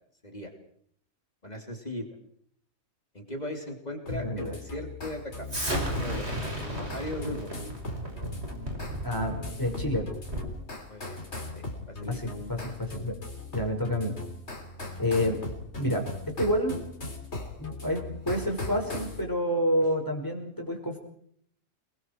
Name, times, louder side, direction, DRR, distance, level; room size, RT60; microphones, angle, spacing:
voice 1, 1.4-2.1 3.1-5.5 5.9-7.6 10.9-11.2 11.5-12.2, left 1 dB, 30° left, 3 dB, 3.3 m, -38 dB
sound 1, 4.1-19.2, left 2 dB, 55° left, 3.7 m, -39 dB
voice 2, 4.1-4.6 9.0-10.1 12.1-13.2 13.5-14.1 15.0-15.4 15.8-16.9 17.6-21.0, equal, 15° left, 2 dB, 5.6 m, -29 dB
Explosion, 5.5-10.6, right 1 dB, 50° right, 6.7 m, -34 dB
30.0 x 21.0 x 4.7 m, 0.64 s
omnidirectional pair, 1.4 m